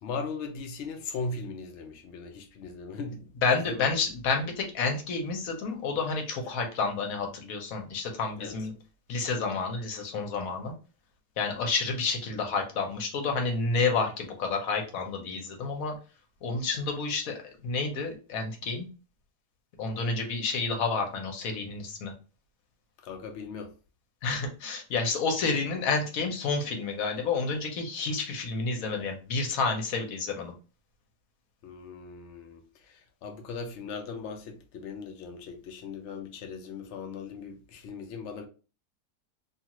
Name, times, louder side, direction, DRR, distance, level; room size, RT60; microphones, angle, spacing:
voice 1, 0.0-3.3 3.7-4.0 8.4-8.5 23.0-23.7 31.6-38.5, left 4 dB, 85° left, 0.6 m, -38 dB
voice 2, 3.4-8.7 9.1-10.7 11.4-16.0 16.4-18.9 19.8-22.1 24.2-30.5, left 4 dB, 60° left, 1.0 m, -30 dB
2.7 x 2.4 x 2.9 m
omnidirectional pair, 1.9 m